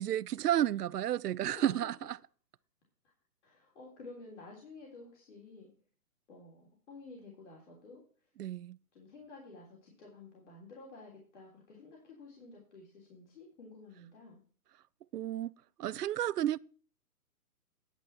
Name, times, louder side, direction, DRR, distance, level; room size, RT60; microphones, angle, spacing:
voice 1, 0.0-1.9 8.4-8.8 15.1-15.5 15.8-16.6, right 12 dB, 80° right, 0.6 m, -31 dB
voice 2, 1.4-1.9 3.4-5.7 6.3-8.0 8.9-14.4, left 3 dB, 50° left, 3.5 m, -51 dB
10.5 x 8.4 x 4.3 m
hypercardioid pair, 165°, 46 cm